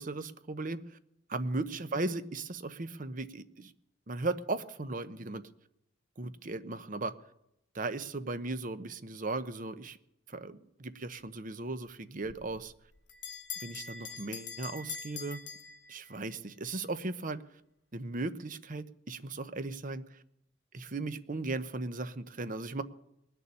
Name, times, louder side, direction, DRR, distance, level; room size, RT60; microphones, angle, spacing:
voice 1, 0.0-1.0 1.3-3.7 4.1-5.5 6.2-7.1 7.7-10.0 10.3-12.7 13.6-15.4 15.9-17.4 17.9-20.2 20.7-22.8, right 2 dB, 45° right, 11 dB, 0.9 m, -37 dB
Bell, 12.3-16.4, left 6 dB, 70° left, 1.8 m, -43 dB
20.0 x 6.9 x 9.7 m, 0.79 s
head